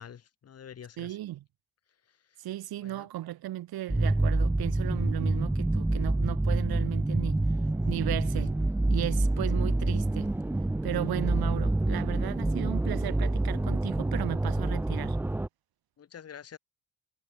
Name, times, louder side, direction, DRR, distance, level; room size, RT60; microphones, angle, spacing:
voice 1, 0.0-1.2 2.1-2.4 2.8-3.1 16.0-16.6, left 8 dB, 40° left, 2.7 m, -47 dB
voice 2, 1.0-1.4 2.4-7.4 7.9-8.6 8.9-10.3 10.8-15.2, right 14 dB, 85° right, 2.9 m, -35 dB
sound 1, 3.9-15.5, right 2 dB, 5° right, 0.4 m, -27 dB
cardioid pair, 155°, 36 cm